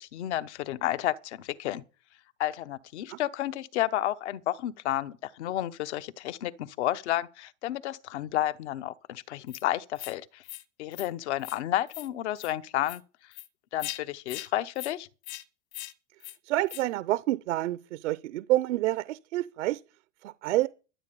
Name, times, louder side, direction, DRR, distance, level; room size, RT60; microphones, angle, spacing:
voice 1, 0.0-1.8 2.4-10.4 10.8-13.0 13.7-15.1, left 13 dB, 70° left, 1.0 m, -31 dB
sound 1, 9.5-9.6 10.0-10.1 10.4-10.6 10.9-11.1 11.4-11.6 11.9-12.1 12.4-12.5 12.8-13.0 13.3-13.5 13.8-14.0 14.3-14.5 14.8-14.9 15.2-15.4 15.7-15.9 16.2-16.4 16.7-16.8, left 17 dB, 50° left, 1.5 m, -40 dB
voice 2, 16.4-19.8 20.2-20.7, right 16 dB, 75° right, 0.7 m, -28 dB
13.0 x 7.8 x 6.9 m
supercardioid pair, 135°, 36 cm